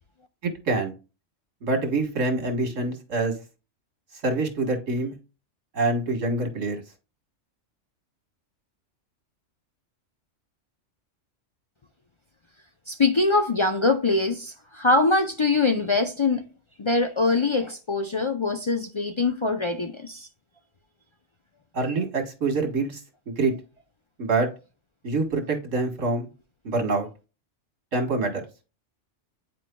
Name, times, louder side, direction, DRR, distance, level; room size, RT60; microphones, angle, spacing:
voice 1, 0.4-0.9 1.6-3.4 4.2-5.1 5.7-6.8 21.7-23.0 23.3-23.5 24.2-24.5 25.0-26.3 26.6-27.1 27.9-28.3, right 3 dB, 80° right, 1.9 m, -25 dB
voice 2, 12.9-16.4 16.8-20.3, left 3 dB, 45° left, 0.4 m, -23 dB
9.4 x 4.6 x 2.2 m
omnidirectional pair, 1.3 m